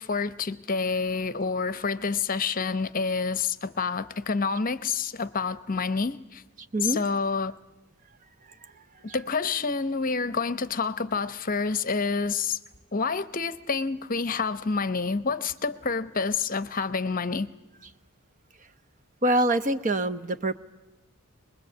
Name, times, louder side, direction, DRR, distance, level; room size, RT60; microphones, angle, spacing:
voice 1, 0.0-6.4 6.8-7.6 9.1-12.6 12.9-17.5, left 4 dB, 40° left, 0.8 m, -28 dB
voice 2, 19.2-20.5, right 1 dB, 35° right, 0.9 m, -24 dB
23.0 x 21.5 x 8.2 m
head